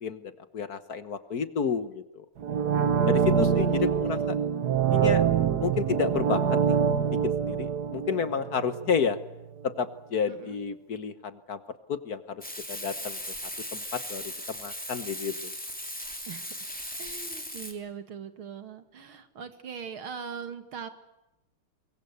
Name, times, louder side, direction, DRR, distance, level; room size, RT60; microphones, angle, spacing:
voice 1, 0.0-2.3 3.1-4.3 4.9-5.2 5.6-6.8 7.2-9.2 9.6-11.6 11.9-12.4 12.7-13.2 13.7-15.5, left 6 dB, 50° left, 12 dB, 1.5 m, -31 dB
sound 1, 2.4-9.2 9.6-9.7, right 7 dB, 55° right, 1.5 m, -25 dB
voice 2, 3.1-4.4 10.3-10.6 16.3-16.7 17.0-20.9, right 6 dB, 80° right, 9 dB, 2.8 m, -41 dB
Frying (food), 12.4-17.7, equal, 5° left, 3.1 m, -37 dB
23.5 x 23.0 x 8.1 m, 0.92 s
omnidirectional pair, 2.3 m